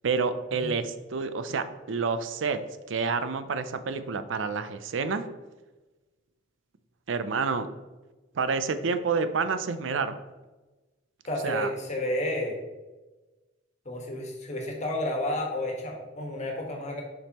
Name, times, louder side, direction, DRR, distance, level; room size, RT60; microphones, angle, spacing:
voice 1, 0.0-2.6 2.9-5.3 7.1-7.7 8.3-10.2 11.4-11.7, right 5 dB, 90° right, 11 dB, 0.5 m, -28 dB
voice 2, 11.2-12.6 13.8-17.0, left 1 dB, 40° left, 0 dB, 1.4 m, -31 dB
7.2 x 5.2 x 3.0 m, 1.2 s
head